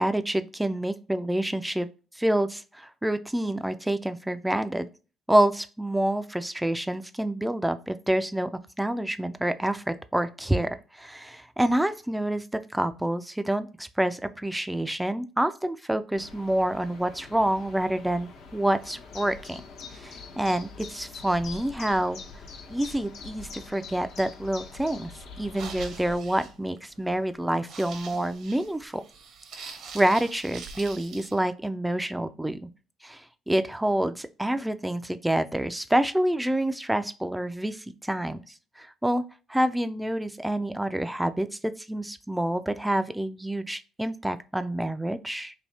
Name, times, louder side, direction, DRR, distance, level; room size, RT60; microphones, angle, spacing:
voice 1, 0.0-1.9 2.2-4.9 5.3-8.5 8.8-19.6 20.0-22.2 22.7-25.1 25.4-29.0 29.6-32.7 33.0-33.2 33.5-37.8 38.0-38.4 38.8-39.2 39.5-45.5, right 1 dB, 5° right, 11 dB, 0.3 m, -27 dB
sound 1, 16.1-26.2, left 4 dB, 70° left, 1.0 m, -44 dB
sound 2, 25.4-31.4, right 5 dB, 65° right, 0.8 m, -44 dB
3.4 x 2.7 x 4.0 m, 0.34 s
cardioid pair, 120°, 0 cm